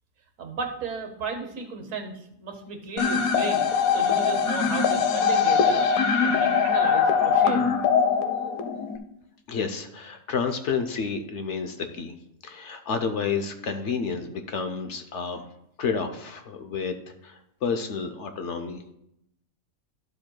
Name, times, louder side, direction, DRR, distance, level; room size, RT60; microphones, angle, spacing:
voice 1, 0.4-5.8 6.2-7.8, right 5 dB, 65° right, 5 dB, 1.4 m, -34 dB
sound 1, 3.0-9.0, left 6 dB, 80° left, 1.2 m, -22 dB
voice 2, 9.5-12.1 12.4-15.4 15.8-18.9, left 5 dB, 60° left, 7 dB, 0.9 m, -30 dB
12.0 x 7.5 x 2.2 m, 0.79 s
omnidirectional pair, 1.5 m